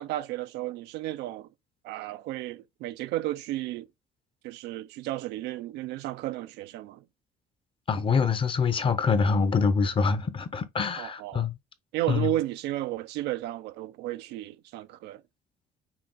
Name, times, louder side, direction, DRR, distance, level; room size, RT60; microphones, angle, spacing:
voice 1, 0.0-1.5 1.8-3.9 4.4-7.0 11.0-11.5 11.9-15.2, right 15 dB, 85° right, 0.4 m, -33 dB
voice 2, 7.9-11.5 12.1-12.3, left 5 dB, 30° left, 0.7 m, -25 dB
5.8 x 2.3 x 3.8 m
cardioid pair, 110°, 17 cm